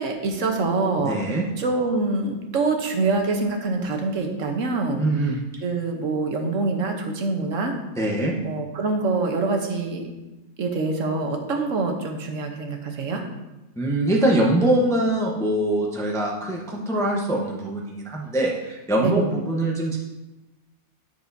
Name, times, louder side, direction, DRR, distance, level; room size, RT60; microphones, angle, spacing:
voice 1, 0.0-5.1 5.6-7.7 8.4-10.1 10.6-13.2 19.0-19.4, right 3 dB, 65° right, 3 dB, 1.4 m, -25 dB
voice 2, 1.0-1.5 5.0-5.4 8.0-8.4 13.8-20.0, right 1 dB, 5° left, -2 dB, 0.8 m, -23 dB
10.5 x 6.8 x 2.7 m, 1.0 s
omnidirectional pair, 1.4 m